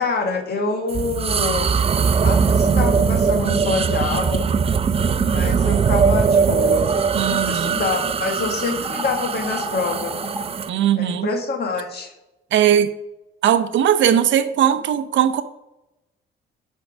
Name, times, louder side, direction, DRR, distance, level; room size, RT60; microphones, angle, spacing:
voice 1, 0.0-1.7 2.2-4.5 5.3-6.9 7.2-10.2 10.9-12.1, left 4 dB, 55° left, 1.6 m, -26 dB
sound 1, 0.9-10.7, right 6 dB, 30° right, 0.4 m, -20 dB
sound 2, 6.7-10.4, equal, 5° left, 3.3 m, -34 dB
voice 2, 7.1-7.8 10.7-11.3 12.5-12.9 13.4-15.4, right 10 dB, 70° right, 0.7 m, -19 dB
8.0 x 4.5 x 6.1 m
cardioid pair, 90°, 20 cm